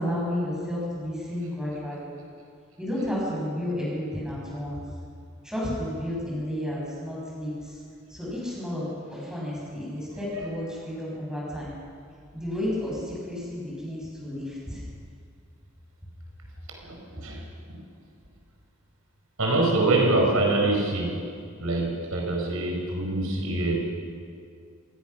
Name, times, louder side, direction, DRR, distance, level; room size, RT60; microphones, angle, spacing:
voice 1, 0.0-2.2 2.8-4.8 5.4-7.5 8.2-11.7 12.3-13.0 13.3-14.8, left 1 dB, 5° right, -6 dB, 7.9 m, -31 dB
voice 2, 16.8-17.8 19.4-21.2 21.6-23.8, right 2 dB, 85° right, 0 dB, 5.0 m, -25 dB
25.5 x 19.0 x 6.2 m, 2.3 s
head